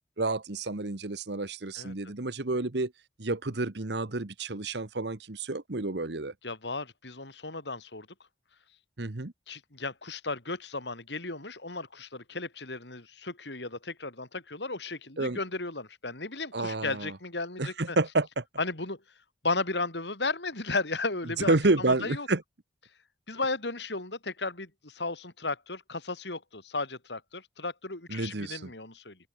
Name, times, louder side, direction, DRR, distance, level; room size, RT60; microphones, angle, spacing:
voice 1, 0.2-2.9 3.2-6.3 9.0-9.3 15.2-15.4 16.5-17.2 17.6-18.4 21.4-22.4 28.1-28.7, right 2 dB, 75° right, 1.3 m, -29 dB
voice 2, 6.4-8.1 9.5-18.0 18.6-19.0 19.4-22.3 23.3-29.2, left 3 dB, 80° left, 4.4 m, -35 dB
open air
head